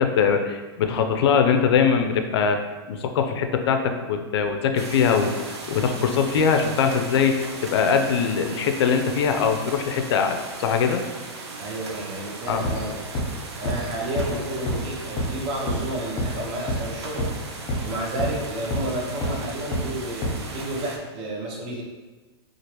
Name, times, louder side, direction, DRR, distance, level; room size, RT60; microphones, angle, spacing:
voice 1, 0.0-2.6 2.9-11.0 12.5-12.7, left 6 dB, 70° left, 5 dB, 0.4 m, -22 dB
sound 1, 4.8-21.0, right 3 dB, 85° right, 0.5 m, -38 dB
voice 2, 11.6-13.0 13.6-17.3 17.8-21.8, right 1 dB, 40° right, -2 dB, 0.8 m, -31 dB
sound 2, 12.6-12.7 13.1-13.2 13.7-13.8 14.2-14.3 14.7-14.8 15.2-15.3 15.7-15.8 16.2-16.3 16.7-16.8 17.2-17.3 17.7-17.8 18.2-18.3 18.7-18.8 19.2-19.3 19.7-19.8 20.2-20.3, left 1 dB, 30° left, 0.9 m, -25 dB
2.8 x 2.4 x 3.0 m, 1.2 s
hypercardioid pair, 125°, 14 cm